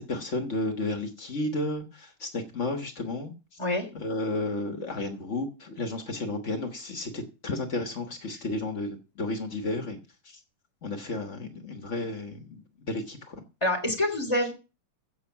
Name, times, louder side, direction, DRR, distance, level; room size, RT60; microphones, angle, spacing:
voice 1, 0.0-3.6 3.9-10.0 10.2-10.4 10.8-13.4, left 2 dB, 65° left, 6 dB, 0.7 m, -32 dB
voice 2, 13.6-14.5, left 1 dB, 10° left, 2 dB, 3.0 m, -26 dB
15.0 x 5.6 x 7.3 m, 0.33 s
omnidirectional pair, 3.5 m